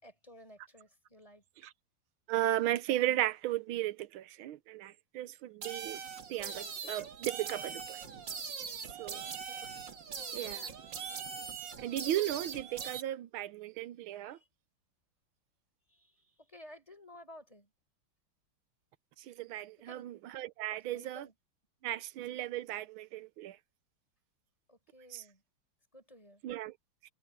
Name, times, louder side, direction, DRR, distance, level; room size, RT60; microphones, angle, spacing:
voice 1, 0.0-1.4 8.8-9.4 14.1-14.5 15.9-17.7 19.8-20.1 20.8-21.3 24.7-25.4 25.9-26.4, left 1 dB, 15° left, 4.8 m, -55 dB
voice 2, 2.3-6.0 6.3-8.0 9.0-9.2 10.3-10.7 11.8-14.4 19.2-21.3 21.8-23.6 25.1-25.2 26.4-26.7, right 14 dB, 75° right, 1.5 m, -35 dB
sound 1, 5.6-13.0, right 6 dB, 60° right, 2.6 m, -41 dB
omnidirectional pair, 2.4 m